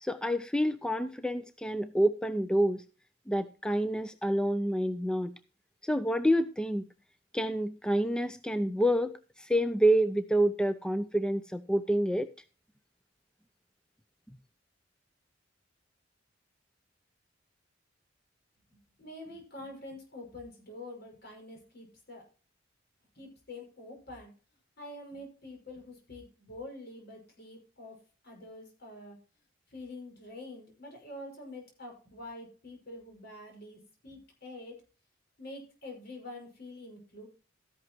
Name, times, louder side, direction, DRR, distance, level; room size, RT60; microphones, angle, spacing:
voice 1, 0.0-2.8 3.3-5.3 5.8-6.8 7.3-9.1 9.4-12.3, equal, 5° left, 0.4 m, -28 dB
voice 2, 18.7-22.2 23.2-24.3 24.8-28.0 28.2-29.2 29.7-34.8 35.4-37.3, left 1 dB, 55° left, 5.9 m, -46 dB
13.5 x 11.0 x 3.0 m
head